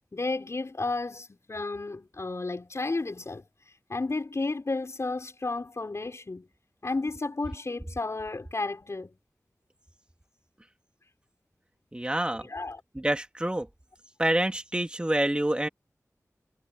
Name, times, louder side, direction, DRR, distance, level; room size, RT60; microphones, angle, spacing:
voice 1, 0.1-3.4 3.9-6.5 6.8-9.2 12.4-12.8, left 3 dB, 50° left, 6.3 m, -32 dB
voice 2, 11.9-12.5 12.9-13.7 14.2-15.7, right 1 dB, 15° right, 3.0 m, -27 dB
wide cardioid pair, 80°, 6 cm